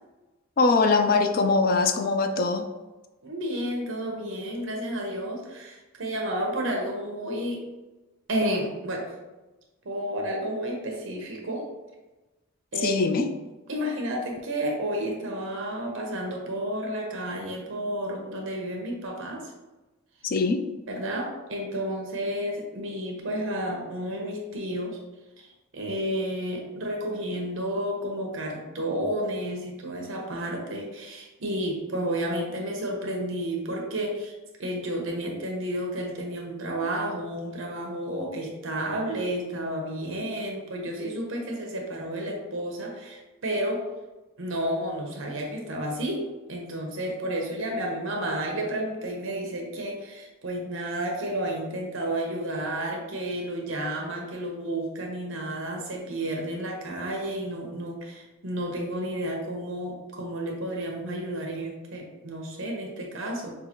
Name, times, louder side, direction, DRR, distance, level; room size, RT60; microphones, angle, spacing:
voice 1, 0.6-2.7 12.8-13.3 20.2-20.6, left 3 dB, 40° left, 7 dB, 0.3 m, -22 dB
voice 2, 3.2-7.6 8.3-9.1 9.8-11.6 12.7-13.0 13.7-19.5 20.9-25.0 25.4-25.5 25.7-34.3 34.6-43.8 44.4-63.5, right 1 dB, 60° right, 0 dB, 0.9 m, -31 dB
5.5 x 2.4 x 2.9 m, 1.1 s
head